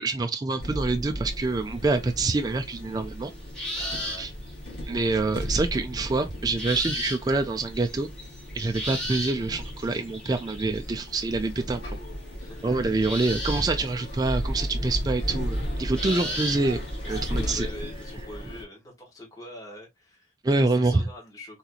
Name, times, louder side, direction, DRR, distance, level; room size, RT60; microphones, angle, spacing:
voice 1, 0.0-3.3 3.7-3.9 4.2-4.3 4.9-8.1 8.5-12.0 12.6-16.8 17.1-17.7 20.4-21.0, right 3 dB, 20° right, 0.3 m, -26 dB
sound 1, 0.6-18.6, equal, 70° left, 1.6 m, -35 dB
sound 2, 1.5-1.6 3.5-5.0 6.6-7.4 7.7-11.5 12.9-14.3 14.6-14.7 15.3-18.1, equal, 5° left, 1.3 m, -35 dB
voice 2, 3.7-4.3 12.3-13.0 15.9-16.4 17.0-21.6, left 1 dB, 20° left, 1.7 m, -44 dB
3.8 x 2.9 x 2.3 m
head